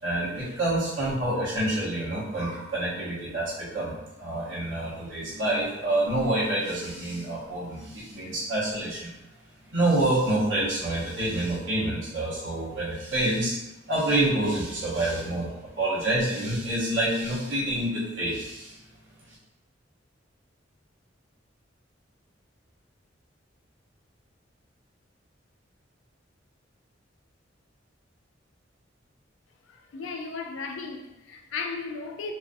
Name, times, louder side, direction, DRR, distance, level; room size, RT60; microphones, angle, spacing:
voice 1, 0.0-3.9 4.2-9.1 9.7-13.5 13.9-18.8, right 1 dB, 85° right, -6 dB, 0.9 m, -27 dB
voice 2, 29.7-32.3, left 4 dB, 80° left, 4 dB, 0.3 m, -35 dB
2.3 x 2.3 x 2.5 m, 0.94 s
head